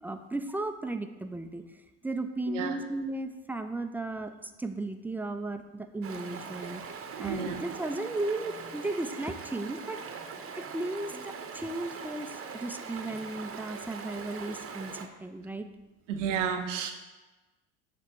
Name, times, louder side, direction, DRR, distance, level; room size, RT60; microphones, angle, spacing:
voice 1, 0.0-1.7 2.0-6.8 7.2-10.0 10.6-15.7, right 2 dB, 5° right, 7 dB, 0.3 m, -35 dB
Stream, 6.0-15.1, right 5 dB, 40° right, 0.8 m, -42 dB
voice 2, 7.1-7.6 16.1-16.9, right 7 dB, 85° right, 6 dB, 0.7 m, -31 dB
7.0 x 3.3 x 4.4 m, 1.1 s
hypercardioid pair, 70°, 37 cm